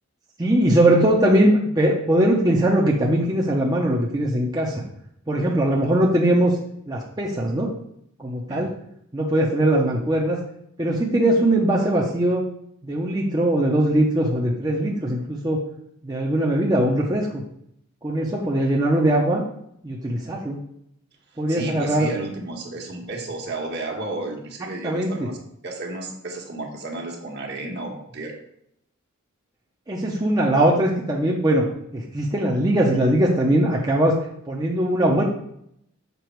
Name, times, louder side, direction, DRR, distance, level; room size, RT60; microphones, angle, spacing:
voice 1, 0.4-4.8 5.3-6.5 6.9-7.7 8.2-8.7 9.1-10.4 10.8-12.4 12.8-15.6 16.0-17.3 18.0-19.4 19.8-20.6 21.4-22.1 24.8-25.1 29.9-31.7 31.9-34.2 34.5-35.2, right 1 dB, 20° right, -3 dB, 0.8 m, -20 dB
voice 2, 21.5-25.4 25.6-28.4, right 2 dB, 55° right, 1 dB, 1.5 m, -32 dB
6.9 x 5.2 x 4.6 m, 0.74 s
head